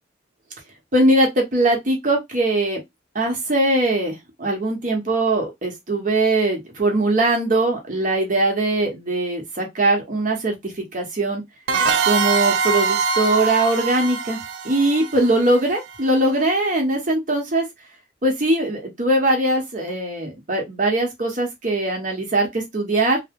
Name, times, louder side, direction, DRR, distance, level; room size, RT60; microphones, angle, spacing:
voice 1, 0.9-2.8 3.1-11.4 12.0-14.4 14.6-17.6 18.2-23.2, right 2 dB, 40° right, 0.9 m, -21 dB
sound 1, 11.7-16.2, right 4 dB, 65° right, 0.3 m, -23 dB
2.8 x 2.1 x 3.5 m
head